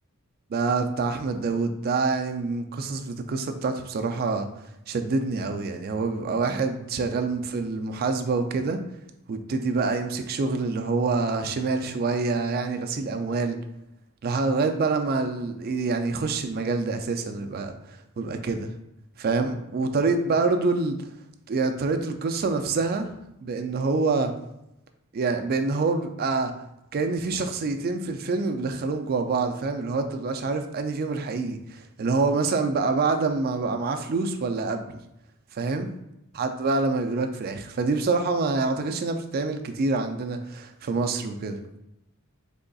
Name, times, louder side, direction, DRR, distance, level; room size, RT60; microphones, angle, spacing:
voice 1, 0.5-4.5 4.9-8.8 9.3-13.6 14.2-17.7 18.2-18.7 19.2-21.0 21.5-23.1 23.4-24.3 25.1-26.5 26.9-34.9 35.5-35.9 36.3-41.6, right 3 dB, 45° right, 6 dB, 0.4 m, -26 dB
3.9 x 3.5 x 2.3 m, 0.87 s
head